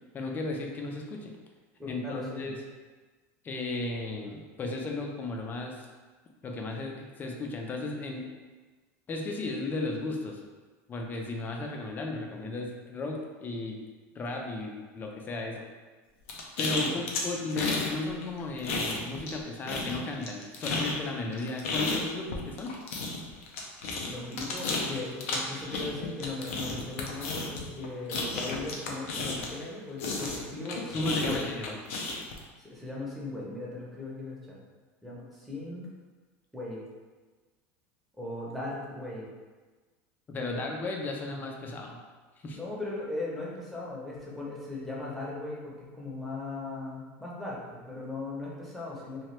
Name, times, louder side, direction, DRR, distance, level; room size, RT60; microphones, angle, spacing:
voice 1, 0.1-1.3 1.9-2.6 3.4-5.9 6.4-8.3 9.1-10.4 10.9-13.8 14.1-15.6 16.6-22.7 30.9-31.7 40.3-42.0 42.4-42.6, left 2 dB, 25° left, 1 dB, 0.5 m, -35 dB
voice 2, 1.8-2.5 16.8-16.9 24.1-31.5 32.6-34.6 35.0-35.9 36.5-36.8 38.2-39.2 40.5-40.6 42.5-49.3, left 2 dB, ahead, -6 dB, 0.8 m, -38 dB
sound 1, 16.3-17.9 18.2-19.4 19.7-29.7 30.0-32.4, left 3 dB, 85° left, 0.5 m, -33 dB
2.9 x 2.2 x 3.2 m, 1.3 s
supercardioid pair, 120°, 7 cm